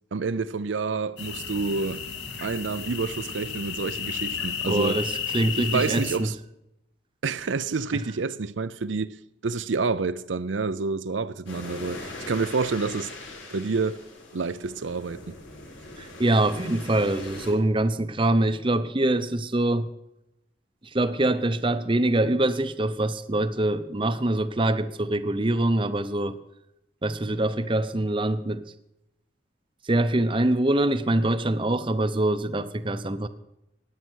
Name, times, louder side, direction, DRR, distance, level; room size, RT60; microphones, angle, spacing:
voice 1, 0.1-2.0 2.4-5.0 5.6-6.3 7.2-9.2 9.4-13.1 13.5-14.0 14.3-15.3 17.5-17.6, right 4 dB, 80° right, 0.6 m, -28 dB
sound 1, 1.2-6.2, left 6 dB, 70° left, 2.2 m, -33 dB
voice 2, 4.7-6.3 16.0-19.9 20.8-26.4 27.0-28.6 29.8-33.3, right 1 dB, 25° right, 0.8 m, -24 dB
sound 2, 11.5-17.5, left 2 dB, 90° left, 4.5 m, -41 dB
16.5 x 10.0 x 6.4 m
head